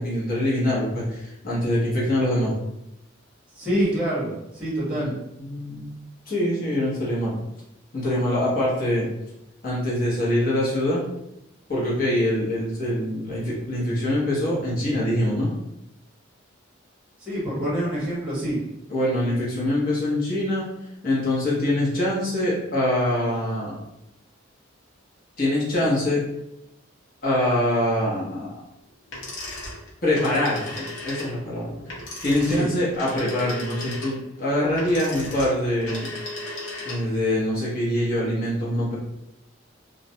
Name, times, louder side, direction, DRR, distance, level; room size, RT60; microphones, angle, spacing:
voice 1, 0.0-2.5 4.9-6.0 6.3-7.4 7.9-9.1 9.6-11.0 11.7-15.5 18.9-20.7 21.0-23.8 25.4-26.2 27.2-28.5 30.0-31.8 32.2-36.1 36.8-39.0, left 1 dB, 45° left, -6 dB, 0.9 m, -24 dB
voice 2, 3.5-5.2 17.2-18.6 32.4-32.7, equal, 5° right, -8 dB, 0.8 m, -26 dB
sound 1, 29.1-37.2, left 2 dB, 80° left, 0.7 m, -35 dB
2.4 x 2.0 x 2.6 m, 0.85 s
head